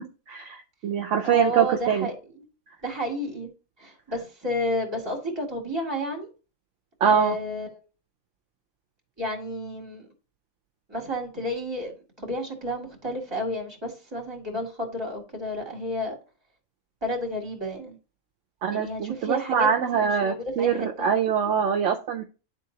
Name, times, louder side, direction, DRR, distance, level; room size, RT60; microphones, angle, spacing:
voice 1, 0.3-2.1 7.0-7.4 18.6-22.2, right 7 dB, 70° right, 1.0 m, -24 dB
voice 2, 1.2-2.2 2.8-3.5 3.8-6.3 7.0-7.7 9.2-10.1 10.9-11.9 12.2-16.2 17.0-18.0 18.7-21.1, left 1 dB, 20° right, 2.2 m, -31 dB
11.5 x 3.8 x 2.8 m
omnidirectional pair, 1.4 m